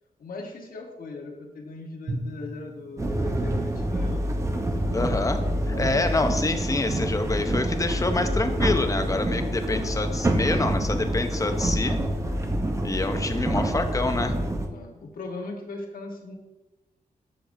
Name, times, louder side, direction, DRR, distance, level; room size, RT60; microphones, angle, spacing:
voice 1, 0.2-4.2 5.7-6.4 9.6-9.8 14.7-16.4, left 3 dB, 75° left, 2 dB, 1.2 m, -39 dB
Drum, 2.1-4.5, right 1 dB, 50° right, 1.0 m, -38 dB
sound 1, 3.0-14.7, right 1 dB, 20° right, 0.7 m, -27 dB
voice 2, 4.9-12.0 12.8-14.3, left 2 dB, 20° left, 7 dB, 0.7 m, -27 dB
8.8 x 6.6 x 2.7 m, 1.1 s
wide cardioid pair, 120°, 15 cm